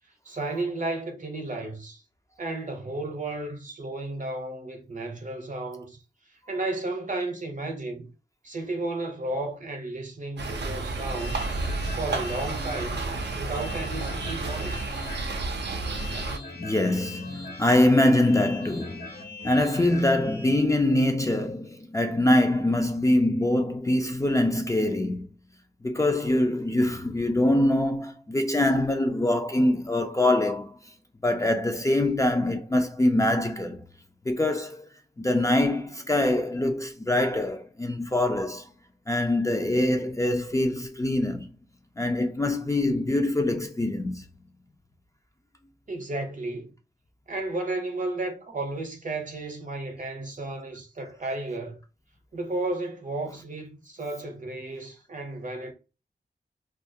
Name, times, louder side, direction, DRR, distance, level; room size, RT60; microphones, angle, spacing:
voice 1, 0.2-2.0 2.4-6.0 6.5-8.1 8.4-11.5 12.0-13.1 13.3-14.9 45.9-46.7 47.3-51.8 52.3-55.7, right 2 dB, 50° right, 0.7 m, -33 dB
sound 1, 10.4-16.4, right 3 dB, 80° right, 0.5 m, -31 dB
sound 2, 11.1-20.5, left 3 dB, 65° left, 1.0 m, -42 dB
voice 2, 16.6-19.1 19.4-25.3 25.8-30.8 31.2-33.8 34.3-34.9 35.2-38.7 39.1-41.5 42.0-44.2, left 1 dB, 20° left, 0.4 m, -24 dB
2.3 x 2.1 x 2.6 m
cardioid pair, 60°, 17 cm